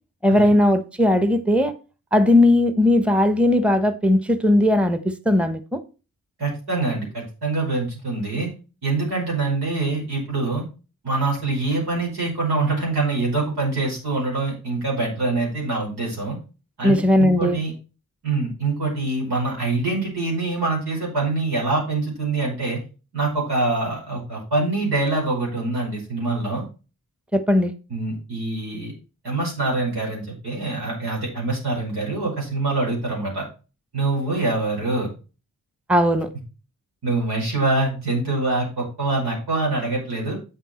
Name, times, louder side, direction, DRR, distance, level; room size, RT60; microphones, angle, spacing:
voice 1, 0.2-1.7 2.1-5.8 16.8-17.6 27.3-27.7 35.9-36.3, left 1 dB, 5° right, 1.1 m, -18 dB
voice 2, 6.4-8.5 8.8-10.6 11.0-16.4 16.8-17.7 18.2-22.8 23.1-26.6 27.9-28.9 29.2-33.5 33.9-35.1 37.0-40.4, right 3 dB, 85° right, 5.3 m, -24 dB
8.4 x 6.9 x 4.3 m
cardioid pair, 40°, 38 cm